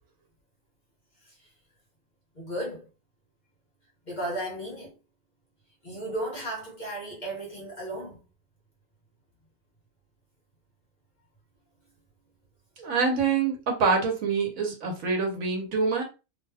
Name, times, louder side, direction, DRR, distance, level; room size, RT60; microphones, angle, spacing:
voice 1, 2.3-2.9 4.1-5.0 5.8-8.2, right 1 dB, 35° left, 0.9 m, -34 dB
voice 2, 12.8-16.0, right 5 dB, 70° right, 1.3 m, -25 dB
2.9 x 2.2 x 3.4 m
omnidirectional pair, 1.5 m